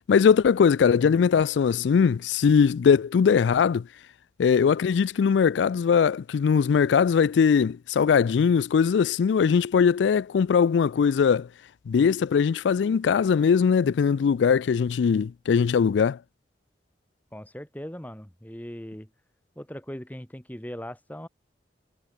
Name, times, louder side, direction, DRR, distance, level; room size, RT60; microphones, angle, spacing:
voice 1, 0.1-3.8 4.4-11.5 11.9-16.2, left 6 dB, 90° left, 0.4 m, -21 dB
voice 2, 17.3-19.1 19.6-21.3, equal, 10° left, 2.4 m, -39 dB
head